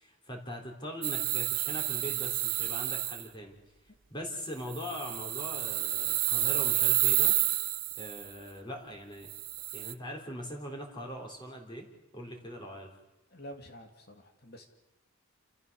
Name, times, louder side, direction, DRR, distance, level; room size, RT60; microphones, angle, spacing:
voice 1, 0.0-3.6 4.1-7.4 8.0-9.3 9.7-11.9 12.1-12.9, equal, 20° left, 1 dB, 3.7 m, -41 dB
sound 1, 1.0-3.2 4.7-8.2 9.3-9.9, right 16 dB, 40° right, 0.6 m, -30 dB
voice 2, 13.3-14.6, equal, 45° left, 4 dB, 2.5 m, -48 dB
29.5 x 14.0 x 7.0 m, 1.1 s
head